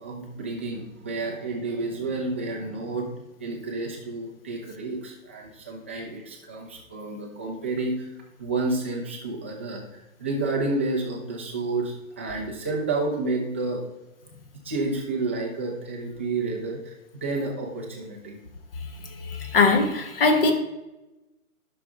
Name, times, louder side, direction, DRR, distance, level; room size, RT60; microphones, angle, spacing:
voice 1, 0.0-3.1 3.4-8.1 8.4-13.8 14.6-18.4, right 3 dB, 10° right, -2 dB, 0.5 m, -30 dB
voice 2, 19.2-20.5, left 3 dB, 40° left, 6 dB, 1.3 m, -21 dB
11.5 x 6.1 x 3.5 m, 0.99 s
figure-of-eight pair, 145°, 44 cm